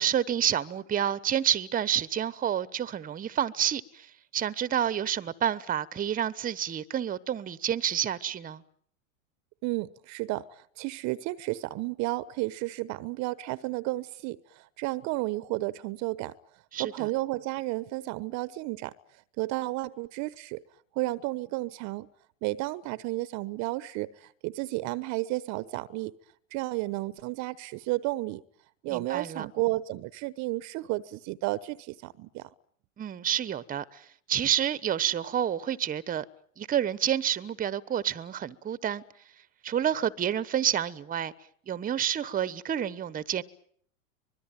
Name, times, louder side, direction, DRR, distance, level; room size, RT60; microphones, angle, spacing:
voice 1, 0.0-4.1 4.3-8.6 16.7-17.1 28.9-29.5 33.0-36.2 36.6-39.0 39.6-41.3 41.7-43.4, right 10 dB, 20° right, 1.1 m, -29 dB
voice 2, 9.6-16.3 16.8-18.9 19.4-20.6 20.9-22.1 22.4-26.2 26.5-28.4 28.8-32.5, right 19 dB, 45° right, 1.0 m, -32 dB
24.5 x 21.5 x 9.1 m
hypercardioid pair, 100°, 39 cm